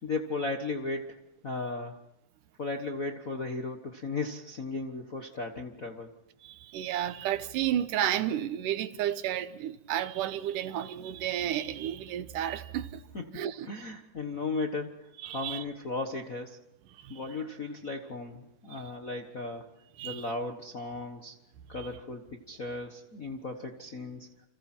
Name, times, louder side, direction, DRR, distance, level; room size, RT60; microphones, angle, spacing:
voice 1, 0.0-1.2 1.4-2.0 2.6-6.1 13.1-13.4 13.7-16.6 17.1-19.7 20.0-21.3 21.7-24.3, left 3 dB, 45° left, 1.0 m, -36 dB
voice 2, 6.4-13.0 13.3-13.7 15.2-15.6 17.0-17.2 20.0-20.3, right 11 dB, 85° right, 2.6 m, -32 dB
29.5 x 27.0 x 4.5 m
omnidirectional pair, 3.7 m